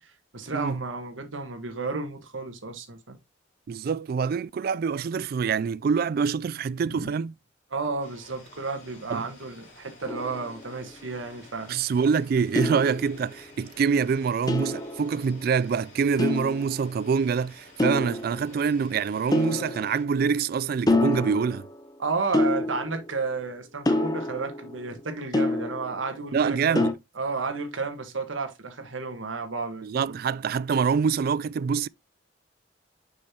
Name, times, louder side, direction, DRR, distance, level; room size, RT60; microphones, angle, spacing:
voice 1, 0.0-3.2 6.8-7.1 7.7-11.7 22.0-26.9 27.1-30.2, right 4 dB, 90° right, 1.4 m, -32 dB
voice 2, 3.7-7.3 9.1-9.3 11.7-21.7 26.3-26.9 29.8-31.9, right 6 dB, 50° right, 0.3 m, -25 dB
sound 1, 8.0-20.0, left 2 dB, 45° left, 3.2 m, -52 dB
sound 2, 10.1-11.1 12.5-13.6 14.5-15.7 16.2-17.1 17.8-18.8 19.3-20.5 20.9-21.9 22.3-23.3 23.8-26.2 26.7-26.9, left 2 dB, 20° left, 0.7 m, -28 dB
6.7 x 5.5 x 2.8 m
head